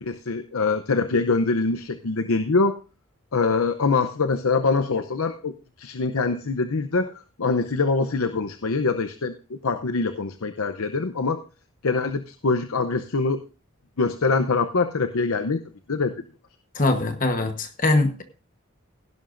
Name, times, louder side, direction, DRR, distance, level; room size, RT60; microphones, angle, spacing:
voice 1, 0.0-2.8 3.3-5.5 5.8-11.4 11.8-13.4 14.0-15.6 15.9-16.1, left 4 dB, 85° left, 8 dB, 0.7 m, -24 dB
voice 2, 16.7-18.2, left 2 dB, 40° left, 7 dB, 1.1 m, -22 dB
16.5 x 11.5 x 2.6 m, 0.34 s
head